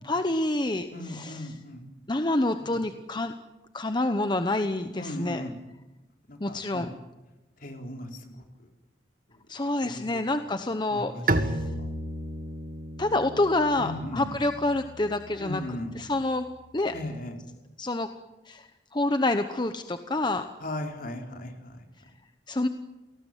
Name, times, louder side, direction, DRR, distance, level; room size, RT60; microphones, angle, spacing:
voice 1, 0.0-1.5 2.1-3.3 3.7-5.5 6.4-6.9 9.5-11.7 13.0-15.6 15.9-16.5 16.7-16.9 17.8-18.1 18.4-20.5 22.5-22.7, left 2 dB, 25° left, 8 dB, 1.0 m, -27 dB
voice 2, 0.9-1.8 2.6-2.7 4.9-5.5 6.3-6.9 7.6-8.4 9.8-10.0 10.9-11.9 13.8-14.3 15.4-16.0 16.9-17.3 20.6-21.8, left 1 dB, 50° left, 3 dB, 4.2 m, -37 dB
Bowed string instrument, 11.3-16.9, right 2 dB, 55° right, 1.9 m, -33 dB
29.0 x 19.0 x 9.2 m, 1.1 s
head